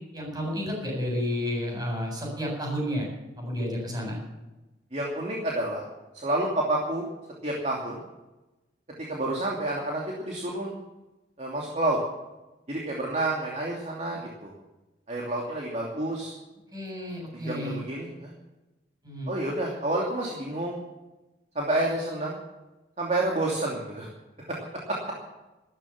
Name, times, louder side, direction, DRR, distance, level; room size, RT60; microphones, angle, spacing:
voice 1, 0.1-3.1 3.4-4.2 14.1-14.2 16.7-17.8 19.0-19.3, equal, 20° right, -1 dB, 7.8 m, -31 dB
voice 2, 4.9-5.9 6.1-7.0 7.4-8.0 9.1-10.7 11.4-12.0 12.7-14.5 15.1-16.3 17.4-18.3 19.3-20.8 21.5-22.4 23.0-24.1 24.4-24.6 24.9-25.0, right 2 dB, 40° right, -2 dB, 2.8 m, -29 dB
14.0 x 13.5 x 7.3 m, 1.0 s
head